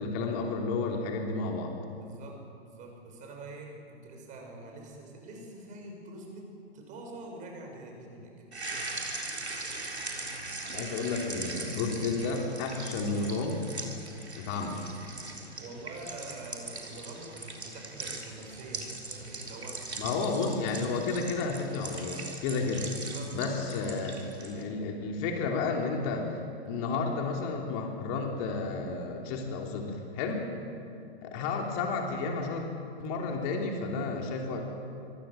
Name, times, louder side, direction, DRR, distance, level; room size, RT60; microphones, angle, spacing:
voice 1, 0.0-1.7 10.7-13.7 14.4-14.8 20.0-22.9 23.3-24.1 24.4-26.3 26.6-30.5 31.2-32.7 33.0-34.7, left 4 dB, 30° left, 1 dB, 3.3 m, -32 dB
voice 2, 1.9-8.4 10.6-10.9 15.6-20.0 20.3-20.4 23.0-23.4 31.4-31.6, right 2 dB, 25° right, 2 dB, 6.6 m, -45 dB
sound 1, 8.5-24.6, right 2 dB, 80° right, 4.0 m, -40 dB
25.5 x 23.0 x 7.4 m, 2.5 s
figure-of-eight pair, 115°, 32 cm